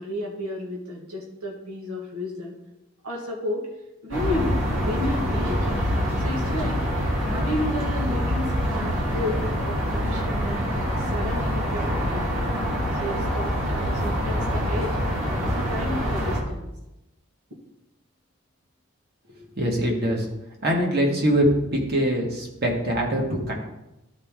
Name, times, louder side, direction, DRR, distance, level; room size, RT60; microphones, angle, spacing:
voice 1, 0.0-2.6 3.0-3.7 4.0-5.6 6.2-6.8 7.2-9.4 9.7-12.4 13.0-15.0 15.4-16.7, left 1 dB, 90° right, -3 dB, 1.6 m, -32 dB
sound 1, 4.1-16.4, equal, 65° right, 2.4 m, -25 dB
voice 2, 19.3-20.3 20.6-23.5, equal, 45° right, 0 dB, 1.6 m, -23 dB
12.0 x 4.5 x 3.7 m, 0.94 s
head